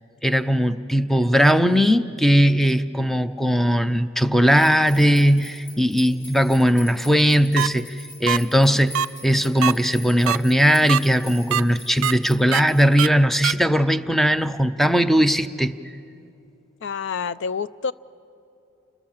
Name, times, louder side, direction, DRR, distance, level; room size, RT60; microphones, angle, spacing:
voice 1, 0.2-15.7, equal, ahead, 11 dB, 0.5 m, -19 dB
sound 1, 4.5-13.0, left 2 dB, 40° left, 2.6 m, -43 dB
sound 2, 7.6-7.7 8.3-8.4 8.9-9.1 9.6-9.7 10.3-10.4 10.9-11.0 11.5-11.6 12.0-12.1 12.5-12.6 13.0-13.1 13.4-13.5, right 9 dB, 85° right, 0.5 m, -21 dB
voice 2, 16.8-17.9, left 5 dB, 60° left, 16 dB, 0.5 m, -27 dB
29.0 x 21.0 x 7.3 m, 2.7 s
head